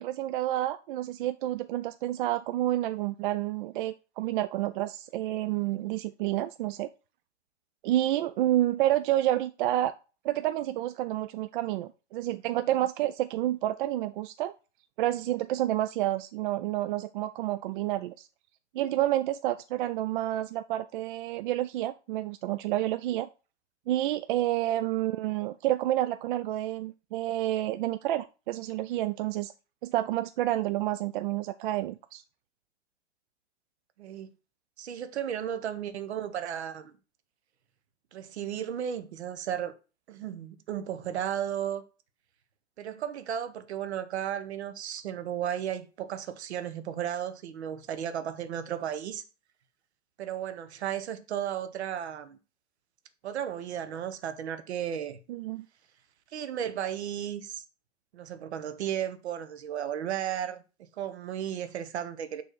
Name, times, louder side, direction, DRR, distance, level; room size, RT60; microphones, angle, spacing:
voice 1, 0.0-6.9 7.8-9.9 10.2-14.5 15.0-18.3 18.7-23.3 23.9-29.5 29.8-32.2 55.3-55.6, right 14 dB, 45° right, 0.5 m, -29 dB
voice 2, 34.0-34.3 34.8-36.9 38.1-39.7 40.1-41.8 42.8-49.2 50.2-52.4 53.2-55.2 56.3-57.6 58.1-62.4, right 9 dB, 65° right, 1.3 m, -34 dB
6.7 x 3.5 x 6.1 m
hypercardioid pair, 110°, 35 cm